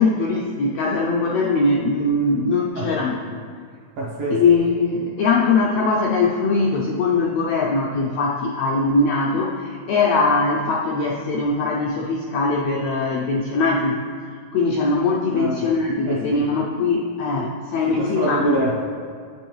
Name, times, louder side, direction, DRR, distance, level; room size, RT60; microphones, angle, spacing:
voice 1, 0.0-3.2 4.3-14.0 14.5-18.6, left 3 dB, 85° left, -2 dB, 1.5 m, -21 dB
voice 2, 4.0-4.4 15.3-15.7 16.0-16.5 17.9-18.8, right 1 dB, 75° right, -4 dB, 1.5 m, -25 dB
8.8 x 5.3 x 3.0 m, 2.1 s
omnidirectional pair, 3.5 m